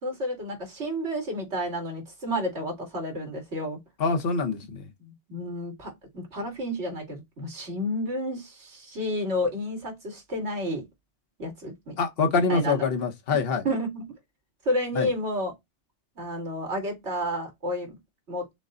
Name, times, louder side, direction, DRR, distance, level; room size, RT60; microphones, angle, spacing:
voice 1, 0.0-3.8 5.0-10.8 11.4-12.0 12.3-12.8 13.3-14.1 14.6-15.5 16.2-17.9 18.3-18.4, equal, 65° right, 2.5 m, -31 dB
voice 2, 4.0-4.9 12.0-13.6 14.9-15.1, left 4 dB, 55° left, 1.2 m, -25 dB
6.3 x 2.2 x 3.7 m
omnidirectional pair, 1.2 m